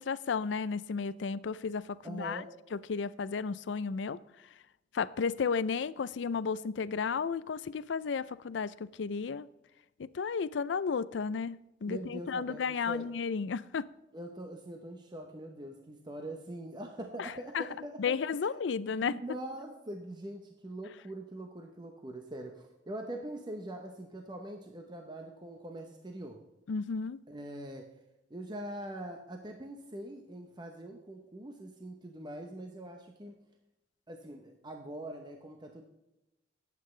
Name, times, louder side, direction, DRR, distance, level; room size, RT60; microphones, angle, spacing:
voice 1, 0.0-2.4 2.7-4.2 4.9-9.5 10.0-13.9 17.2-17.6 18.0-19.2 26.7-27.2, left 5 dB, 75° left, 0.4 m, -33 dB
voice 2, 2.0-2.6 11.9-13.1 14.1-18.4 18.9-26.4 27.3-28.0 28.3-33.4 34.1-35.8, right 1 dB, 25° right, 0.9 m, -43 dB
19.0 x 8.4 x 3.2 m
head